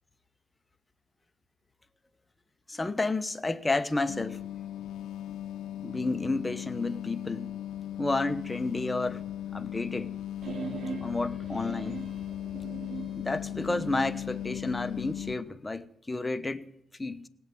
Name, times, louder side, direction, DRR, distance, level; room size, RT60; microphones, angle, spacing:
voice 1, 2.7-4.4 5.8-7.6 8.0-9.2 9.5-10.1 11.0-12.1 13.2-16.7 17.0-17.3, left 2 dB, 15° left, 1.0 m, -31 dB
sound 1, 4.1-15.4, left 11 dB, 80° left, 0.6 m, -37 dB
sound 2, 10.4-14.2, right 4 dB, 60° right, 4.5 m, -41 dB
18.0 x 8.0 x 8.7 m
cardioid pair, 80°, 0 cm